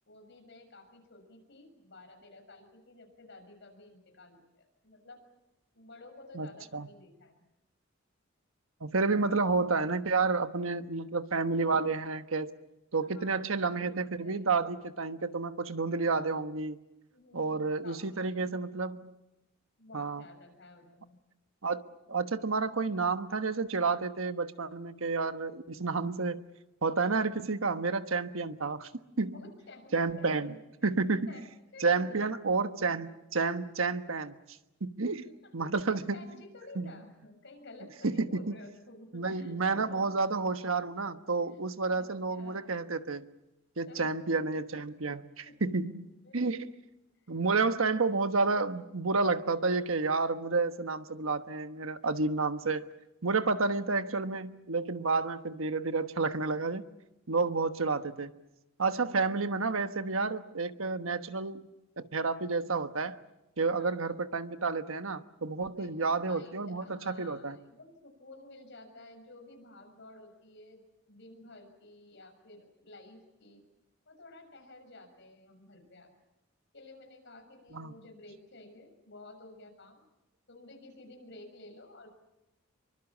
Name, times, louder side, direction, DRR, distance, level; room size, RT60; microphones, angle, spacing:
voice 1, 0.1-5.2 5.7-7.4 9.1-9.3 13.0-14.5 17.1-18.5 19.8-21.2 29.3-30.9 31.3-31.4 31.7-32.2 35.4-40.3 41.5-42.7 43.8-44.5 45.4-45.5 46.2-46.6 63.6-64.1 65.8-70.8 71.1-73.6 74.1-76.1 76.7-80.0 80.5-82.1, left 2 dB, 60° left, 4 dB, 6.4 m, -52 dB
voice 2, 6.3-6.9 8.8-12.5 12.9-16.8 17.3-19.1 19.9-20.2 21.6-26.4 26.8-28.9 29.2-29.4 29.9-30.5 30.8-31.3 31.8-34.4 34.8-35.2 35.5-36.2 36.8-36.9 38.0-38.5 39.1-43.3 43.8-46.7 47.3-52.8 53.2-56.9 57.3-58.3 58.8-61.7 62.0-63.2 63.6-67.6 77.7-77.9, right 4 dB, 90° right, 9 dB, 1.3 m, -30 dB
26.5 x 23.5 x 7.4 m, 0.94 s
head